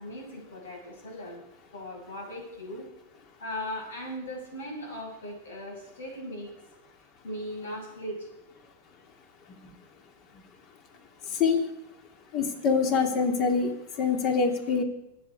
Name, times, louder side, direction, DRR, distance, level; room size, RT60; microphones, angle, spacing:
voice 1, 0.0-1.4 1.7-2.8 3.4-6.5 7.2-8.3, left 1 dB, 85° left, 1 dB, 6.5 m, -38 dB
voice 2, 11.3-11.6 12.3-13.7 14.0-14.8, left 5 dB, 40° left, 5 dB, 2.5 m, -24 dB
24.0 x 8.8 x 4.8 m, 0.90 s
hypercardioid pair, 120°, 0 cm